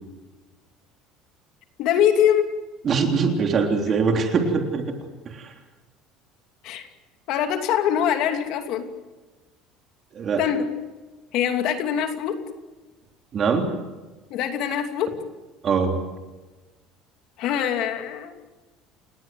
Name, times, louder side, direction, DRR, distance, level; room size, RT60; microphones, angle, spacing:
voice 1, 1.8-2.5 6.6-6.9 7.3-8.9 10.4-10.7 11.3-12.4 14.3-15.1 17.4-18.3, left 9 dB, 50° left, 6 dB, 2.8 m, -23 dB
voice 2, 2.8-4.9 5.3-5.5 10.1-10.4 13.3-13.7 15.6-16.0, right 5 dB, 30° right, 4 dB, 3.6 m, -22 dB
29.5 x 19.0 x 7.8 m, 1.2 s
cardioid pair, 175°, 0 cm